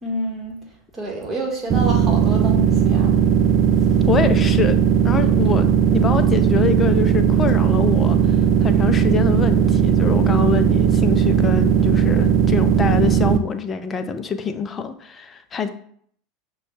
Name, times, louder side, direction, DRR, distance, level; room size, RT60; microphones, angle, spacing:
voice 1, 0.0-3.2 3.8-3.9, right 1 dB, 25° right, 0 dB, 1.5 m, -29 dB
sound 1, 1.7-13.4, right 8 dB, 45° right, 0.4 m, -17 dB
voice 2, 4.1-4.8 5.0-15.7, left 6 dB, 30° left, 9 dB, 0.5 m, -25 dB
6.1 x 2.3 x 3.3 m, 0.64 s
hypercardioid pair, 90°, 0 cm